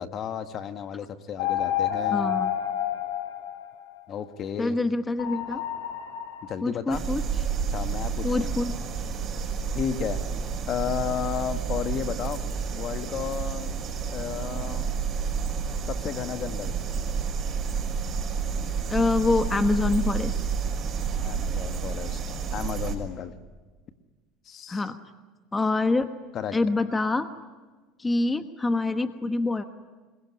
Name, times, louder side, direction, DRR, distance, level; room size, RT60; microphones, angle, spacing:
voice 1, 0.0-2.3 4.1-4.8 6.4-7.0 7.7-8.5 9.7-10.2 10.7-12.4 12.7-13.8 14.1-14.9 15.8-16.7 21.2-23.3 24.4-24.9 26.3-26.6, left 8 dB, 45° left, 9 dB, 1.6 m, -33 dB
sound 1, 1.4-4.0 5.2-6.5, left 10 dB, 85° left, 3.6 m, -29 dB
voice 2, 2.1-2.5 4.6-5.6 6.6-7.2 8.2-8.7 18.9-20.3 24.7-25.0 25.5-26.1 26.5-27.3 28.0-29.7, left 3 dB, 15° left, 8 dB, 1.2 m, -25 dB
sound 2, 6.9-22.9, right 6 dB, 35° right, 6.1 m, -30 dB
26.5 x 22.5 x 9.9 m, 1.3 s
supercardioid pair, 115°, 0 cm